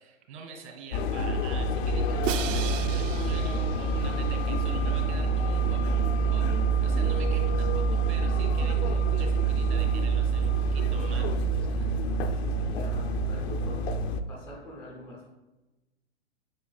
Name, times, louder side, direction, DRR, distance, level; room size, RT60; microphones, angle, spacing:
voice 1, 0.0-11.9, right 5 dB, 60° right, 1 dB, 2.0 m, -46 dB
sound 1, 0.9-14.2, right 3 dB, 55° left, 0.5 m, -26 dB
Crash cymbal, 2.2-4.4, right 9 dB, 80° right, 0.5 m, -36 dB
voice 2, 12.2-14.0 14.3-15.3, equal, 10° left, -3 dB, 0.4 m, -45 dB
7.9 x 5.8 x 2.2 m, 1.1 s
hypercardioid pair, 145°, 38 cm